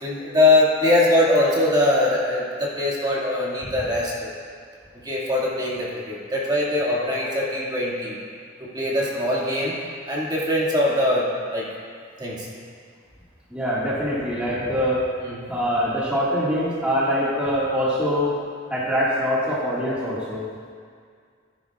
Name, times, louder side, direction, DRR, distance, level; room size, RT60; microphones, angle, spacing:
voice 1, 0.0-4.3 5.0-8.2 8.6-9.8 10.1-11.3 11.5-11.7 12.2-12.5 15.2-15.4, left 1 dB, 20° right, -6 dB, 2.0 m, -22 dB
voice 2, 13.5-15.0 15.5-18.3 18.7-20.4, equal, 5° right, -9 dB, 1.8 m, -23 dB
16.0 x 10.5 x 2.4 m, 2.1 s
head